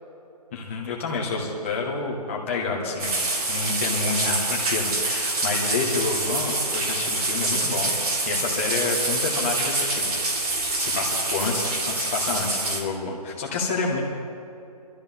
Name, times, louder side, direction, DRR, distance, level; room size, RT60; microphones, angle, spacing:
voice 1, 0.5-3.2 3.5-8.0 8.3-14.1, left 3 dB, 20° left, -2 dB, 1.7 m, -29 dB
sound 1, 3.0-12.8, right 2 dB, 65° right, 3.4 m, -26 dB
22.5 x 13.5 x 3.7 m, 2.8 s
hypercardioid pair, 175°, 20 cm